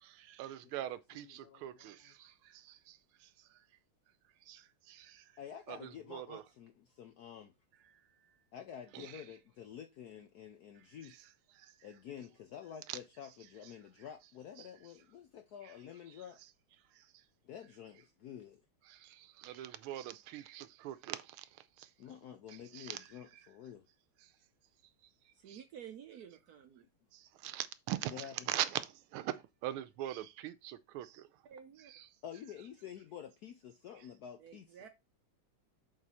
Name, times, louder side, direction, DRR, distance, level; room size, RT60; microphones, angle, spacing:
voice 1, 0.0-3.6 4.5-5.2 5.7-6.4 8.9-9.2 11.5-11.7 12.9-13.0 14.6-14.7 17.0-17.1 18.9-21.5 21.8-21.9 22.5-23.0 25.5-25.6 27.1-29.3 29.6-31.3 31.8-32.1, right 13 dB, 85° right, 1.5 m, -42 dB
voice 2, 1.1-2.1 5.4-7.5 8.5-11.3 11.8-16.4 17.4-18.6 22.0-23.9 28.1-28.5 32.2-34.8, left 9 dB, 80° left, 0.9 m, -49 dB
voice 3, 25.3-26.9 31.4-31.9 34.4-34.9, right 8 dB, 70° right, 0.9 m, -51 dB
7.6 x 3.9 x 4.2 m
omnidirectional pair, 2.3 m